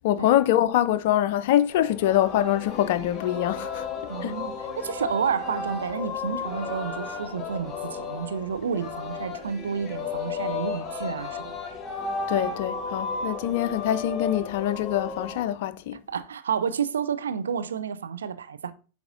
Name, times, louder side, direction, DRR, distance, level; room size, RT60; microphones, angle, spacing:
voice 1, 0.0-3.9 4.2-4.4 12.3-16.0, left 12 dB, 50° left, 0.4 m, -24 dB
Singing, 1.7-15.4, left 4 dB, 25° left, 1.4 m, -34 dB
voice 2, 4.1-11.6 16.1-18.7, right 7 dB, 65° right, 0.5 m, -30 dB
8.6 x 4.7 x 2.6 m
figure-of-eight pair, 90°, 0 cm